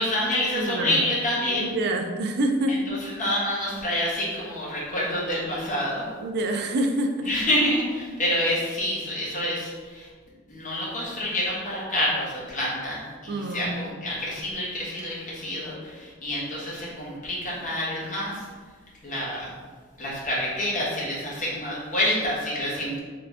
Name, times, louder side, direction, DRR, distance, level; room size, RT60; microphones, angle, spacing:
voice 1, 0.0-1.8 2.7-6.0 7.3-10.1 10.5-18.5 19.0-19.5 20.0-23.0, left 1 dB, 35° left, -6 dB, 1.3 m, -27 dB
voice 2, 0.5-1.0 1.6-2.9 6.2-7.3 13.3-13.8, right 1 dB, 50° right, 3 dB, 0.4 m, -26 dB
3.8 x 3.4 x 3.4 m, 1.5 s
head